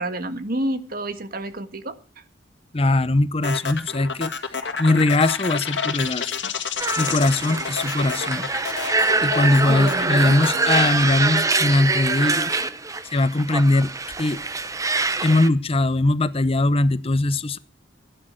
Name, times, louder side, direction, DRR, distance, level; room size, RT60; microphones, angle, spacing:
voice 1, 0.0-2.0 9.6-10.4, right 1 dB, 55° right, 1.6 m, -29 dB
voice 2, 2.7-4.3 4.8-6.4 7.0-8.5 9.2-12.5 13.1-13.9 14.2-14.4 15.2-17.6, left 2 dB, 35° left, 0.7 m, -20 dB
sound 1, 3.4-11.8, left 5 dB, 70° left, 2.0 m, -30 dB
sound 2, 4.5-11.9, left 8 dB, 90° left, 1.9 m, -33 dB
sound 3, 6.8-15.5, right 3 dB, 20° right, 0.9 m, -24 dB
17.5 x 10.0 x 6.3 m
head